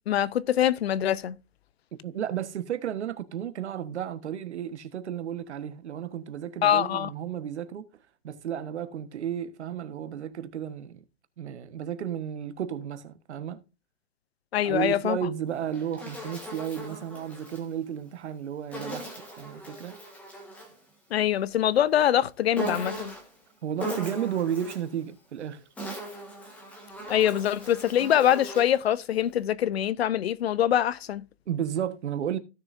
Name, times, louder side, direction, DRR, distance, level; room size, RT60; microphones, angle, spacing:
voice 1, 0.1-1.4 6.6-7.1 14.5-15.2 21.1-23.1 27.1-31.3, left 10 dB, 55° left, 0.7 m, -24 dB
voice 2, 2.0-7.9 8.2-11.0 11.4-13.6 14.6-20.0 23.6-25.6 31.5-32.4, right 9 dB, 65° right, 1.4 m, -33 dB
Insect, 15.5-17.7 18.7-20.8 22.5-23.4 23.8-24.9 25.6-28.8, right 1 dB, 5° left, 1.5 m, -38 dB
16.0 x 6.8 x 2.6 m
hypercardioid pair, 170°, 36 cm